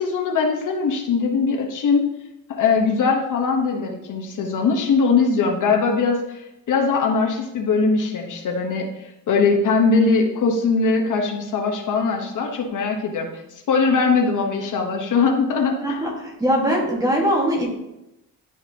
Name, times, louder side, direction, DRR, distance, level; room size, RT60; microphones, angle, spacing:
voice 1, 0.0-2.1 2.5-13.3 13.7-16.0, left 4 dB, 60° left, 2 dB, 1.0 m, -21 dB
voice 2, 15.8-17.7, equal, 10° right, -3 dB, 1.5 m, -21 dB
11.0 x 4.7 x 2.8 m, 0.91 s
cardioid pair, 165°, 35 cm